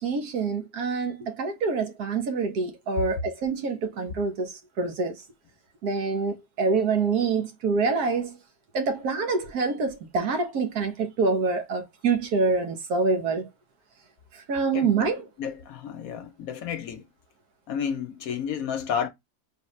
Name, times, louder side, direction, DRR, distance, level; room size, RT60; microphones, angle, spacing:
voice 1, 0.0-5.2 5.8-8.4 8.7-13.5 14.3-15.3, right 4 dB, 70° right, 1.5 m, -26 dB
voice 2, 15.4-17.0 17.7-19.1, left 7 dB, 70° left, 1.0 m, -31 dB
4.1 x 3.6 x 3.1 m
omnidirectional pair, 1.7 m